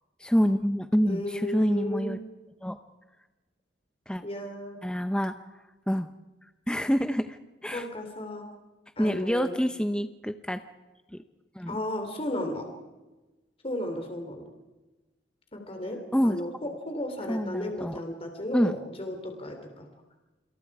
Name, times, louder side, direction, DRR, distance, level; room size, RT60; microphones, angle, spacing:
voice 1, 0.2-2.2 2.6-2.8 4.1-4.2 4.8-5.4 5.9-6.1 6.7-7.4 7.6-7.9 9.0-10.6 11.1-11.2 11.6-11.8 16.1-16.4 17.3-18.0 18.5-18.8, equal, 5° left, 9 dB, 0.8 m, -26 dB
voice 2, 1.0-2.2 4.2-4.8 7.7-8.5 9.0-9.5 11.7-12.7 13.6-14.5 15.5-19.9, left 1 dB, 30° left, 4 dB, 3.4 m, -34 dB
28.0 x 26.5 x 4.9 m, 1.1 s
head